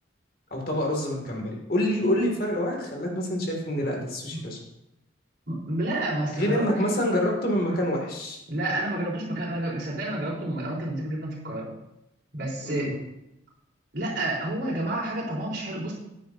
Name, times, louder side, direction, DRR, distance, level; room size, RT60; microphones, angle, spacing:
voice 1, 0.5-4.6 6.3-8.4 12.6-12.9, left 1 dB, 50° left, 0 dB, 2.2 m, -27 dB
voice 2, 5.5-7.0 8.5-11.7 12.3-12.9 13.9-15.9, right 1 dB, 60° right, -4 dB, 3.7 m, -30 dB
15.0 x 9.8 x 2.7 m, 0.89 s
head